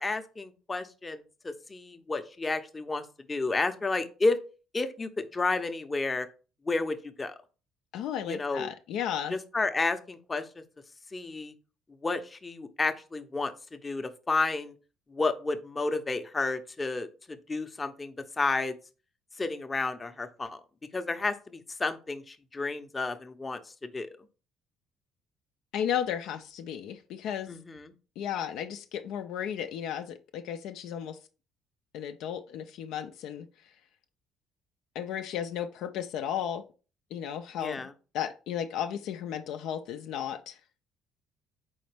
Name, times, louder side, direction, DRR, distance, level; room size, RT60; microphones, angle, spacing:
voice 1, 0.0-4.4 4.7-6.3 6.6-7.4 8.3-8.7 9.3-10.6 11.1-11.5 12.0-14.7 15.1-18.8 19.4-20.6 20.9-24.1 27.5-27.9 37.6-37.9, left 3 dB, 25° left, 8 dB, 0.6 m, -31 dB
voice 2, 7.9-9.3 25.7-27.5 28.2-31.2 31.9-33.5 35.0-36.6 37.1-37.8 38.1-40.6, left 9 dB, 75° left, 7 dB, 0.4 m, -34 dB
4.2 x 3.9 x 3.3 m, 0.34 s
supercardioid pair, 75°, 0 cm